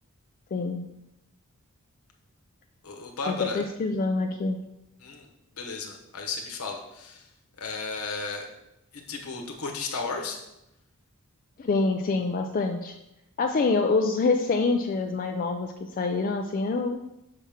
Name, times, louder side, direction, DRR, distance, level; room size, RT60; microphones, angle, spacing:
voice 1, 0.5-0.9 3.3-4.7 11.6-13.0 13.4-17.0, left 3 dB, 40° left, 3 dB, 0.4 m, -26 dB
voice 2, 2.8-3.6 5.0-5.3 5.6-7.3 7.6-8.5 8.9-10.4, left 4 dB, 70° left, 2 dB, 1.0 m, -34 dB
5.7 x 3.5 x 5.7 m, 0.89 s
head